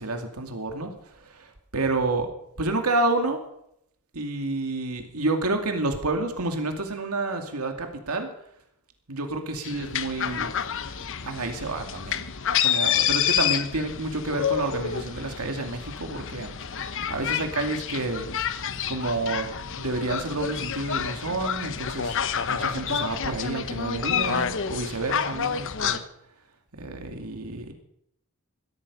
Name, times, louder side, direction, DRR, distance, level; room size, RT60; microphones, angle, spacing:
voice 1, 0.0-2.3 2.6-3.4 4.1-8.3 9.1-10.5 11.2-12.3 12.6-18.3 18.9-22.2 22.5-26.0 26.7-27.7, right 2 dB, 80° right, 5 dB, 2.5 m, -29 dB
sound 1, 9.6-26.0, left 8 dB, 60° left, 1.0 m, -29 dB
16.5 x 13.5 x 5.4 m, 0.74 s
head